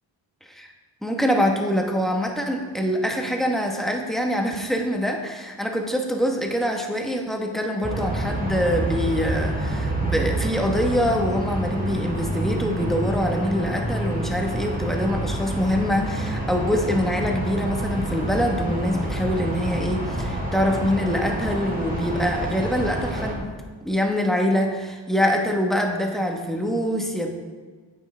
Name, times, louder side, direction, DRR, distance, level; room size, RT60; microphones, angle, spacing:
voice 1, 1.0-23.5 23.8-27.3, equal, ahead, 2 dB, 1.2 m, -24 dB
sound 1, 7.8-23.3, right 1 dB, 20° right, 1.8 m, -28 dB
8.9 x 8.5 x 3.4 m, 1.4 s
wide cardioid pair, 75°, 46 cm